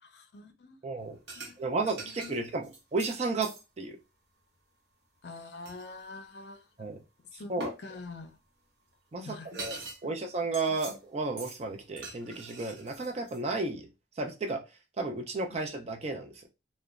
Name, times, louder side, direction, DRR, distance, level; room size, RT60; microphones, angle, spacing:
voice 1, 0.0-0.8 1.4-1.6 2.0-2.4 2.6-2.7 5.2-6.6 7.4-7.5 7.8-8.4 9.2-9.7 15.5-15.6, left 3 dB, 65° left, 0.5 m, -45 dB
voice 2, 0.8-1.2 1.6-3.5 3.8-4.0 6.8-7.0 7.5-7.7 9.1-9.8 10.0-13.9 14.2-14.6 15.0-16.3, right 3 dB, 35° right, 0.4 m, -33 dB
sound 1, 1.3-1.6 1.9-3.6 5.7-5.9 7.6-7.8 8.9-9.0 9.3-10.0 10.3-11.0 11.4-11.6 12.0-13.4, right 2 dB, 65° right, 0.8 m, -43 dB
2.9 x 2.1 x 2.3 m
head